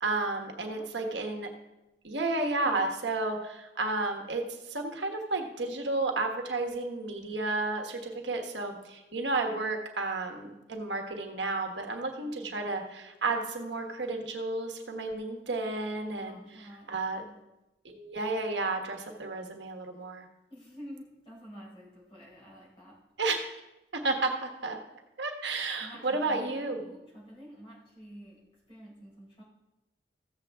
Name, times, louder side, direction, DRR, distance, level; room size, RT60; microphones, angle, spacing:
voice 1, 0.0-1.5 2.0-16.4 16.9-17.2 17.8-20.3 23.2-23.5 23.9-24.8 25.2-26.9, right 3 dB, 85° right, 3 dB, 1.3 m, -32 dB
voice 2, 0.7-1.1 12.2-12.7 16.1-17.4 20.5-23.0 25.8-28.4 28.7-29.4, equal, 30° left, -6 dB, 4.4 m, -49 dB
15.0 x 7.4 x 3.5 m, 0.97 s
head